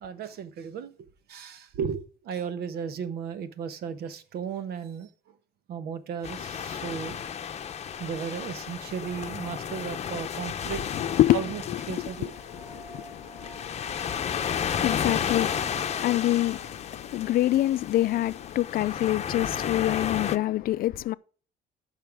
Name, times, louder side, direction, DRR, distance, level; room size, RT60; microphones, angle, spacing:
voice 1, 0.0-0.9 1.3-5.1 5.7-7.2 8.0-10.8 11.3-11.6 11.9-12.3, right 7 dB, 70° right, 1.2 m, -35 dB
sound 1, 6.2-20.4, left 8 dB, 40° left, 0.8 m, -33 dB
voice 2, 10.9-11.4 11.7-21.1, left 14 dB, 60° left, 0.4 m, -27 dB
sound 2, 11.1-18.2, right 3 dB, 25° right, 4.2 m, -52 dB
14.0 x 5.7 x 3.5 m
cardioid pair, 110°, 17 cm